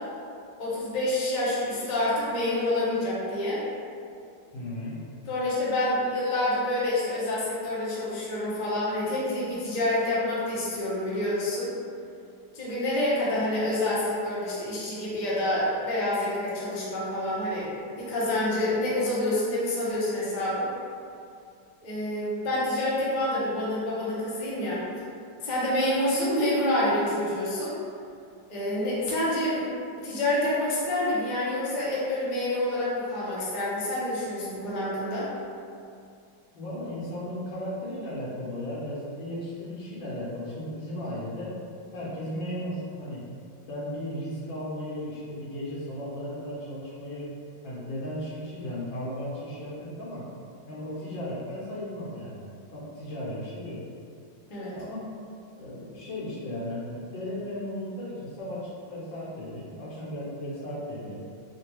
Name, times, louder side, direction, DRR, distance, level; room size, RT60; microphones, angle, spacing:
voice 1, 0.6-3.6 5.3-11.7 12.5-20.7 21.8-24.8 25.4-27.7 28.5-29.7 30.0-35.3 54.5-54.7, left 1 dB, 50° left, -8 dB, 0.5 m, -27 dB
voice 2, 4.5-5.0 36.5-41.5 41.9-43.3 43.7-47.3 47.6-50.2 50.7-52.4 52.7-53.8 54.7-55.1 55.6-61.2, left 1 dB, 80° left, -7 dB, 1.6 m, -35 dB
3.7 x 2.2 x 3.0 m, 2.4 s
omnidirectional pair, 2.0 m